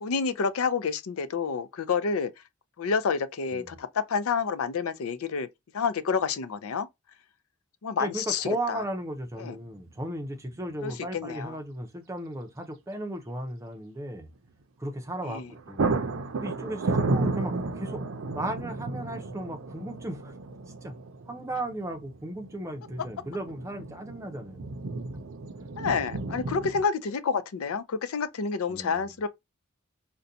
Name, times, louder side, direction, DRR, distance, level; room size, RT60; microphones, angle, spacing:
voice 1, 0.0-2.3 2.8-5.5 5.7-6.9 7.8-8.8 9.4-9.6 10.8-11.6 15.2-15.5 25.8-29.3, left 5 dB, 80° left, 0.5 m, -29 dB
voice 2, 8.0-14.3 14.8-15.4 15.7-15.9 16.4-18.0 18.3-20.3 20.8-21.0 21.3-24.8 28.7-29.0, right 1 dB, 15° right, 0.5 m, -35 dB
sound 1, 8.8-8.9 10.5-10.9 11.2-11.3 15.0-15.2 15.5-26.8, right 3 dB, 70° right, 0.5 m, -33 dB
3.9 x 2.2 x 2.6 m
head